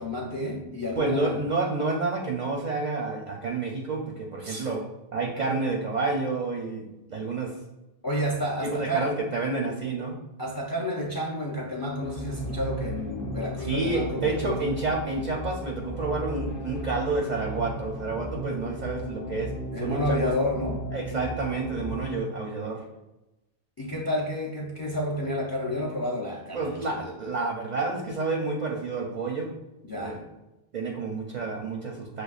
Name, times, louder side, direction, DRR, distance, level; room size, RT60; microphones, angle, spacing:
voice 1, 0.0-1.4 4.4-4.7 8.0-9.1 10.4-14.6 19.7-20.8 23.8-27.0 29.8-30.2, equal, 30° left, -2 dB, 0.4 m, -30 dB
voice 2, 0.9-4.8 5.1-7.5 8.6-10.2 13.6-19.5 19.8-20.3 20.9-22.8 26.5-29.5 29.9-30.2 30.7-32.2, right 3 dB, 55° right, 0 dB, 0.5 m, -29 dB
sound 1, 12.0-22.2, right 1 dB, 55° left, 0.8 m, -35 dB
6.6 x 2.2 x 2.4 m, 0.98 s
omnidirectional pair, 1.2 m